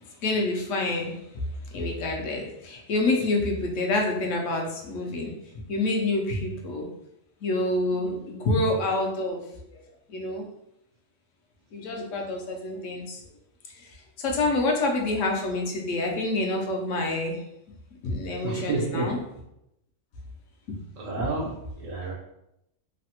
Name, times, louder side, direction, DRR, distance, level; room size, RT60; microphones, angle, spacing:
voice 1, 0.2-1.2 1.7-5.3 5.7-6.9 7.4-9.4 9.7-9.8 10.1-10.5 11.7-13.2 13.7-13.9 14.2-17.4 18.0-19.2 20.7-20.8 21.2-21.3, left 2 dB, 80° left, 0 dB, 1.0 m, -27 dB
voice 2, 18.4-19.1 21.0-22.1, right 2 dB, 90° right, -3 dB, 1.2 m, -30 dB
3.1 x 2.0 x 2.8 m, 0.83 s
omnidirectional pair, 1.3 m